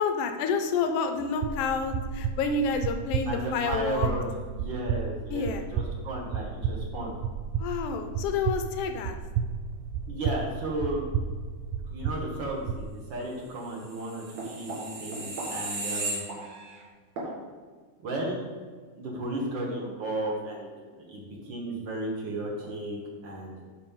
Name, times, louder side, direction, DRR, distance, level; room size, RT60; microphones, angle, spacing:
voice 1, 0.0-4.1 5.3-5.6 7.6-9.2, left 5 dB, 80° left, 6 dB, 1.4 m, -29 dB
sound 1, 1.4-12.9, right 7 dB, 85° right, 2.0 m, -32 dB
voice 2, 3.2-4.2 4.5-7.1 10.1-11.0 11.8-16.3 17.2-17.3 18.0-18.4 18.9-20.7 21.1-23.6, right 1 dB, 50° right, -1 dB, 1.7 m, -34 dB
sound 2, 13.9-16.8 17.2-17.3, right 2 dB, 65° right, 2.8 m, -35 dB
11.0 x 5.4 x 3.7 m, 1.5 s
omnidirectional pair, 3.5 m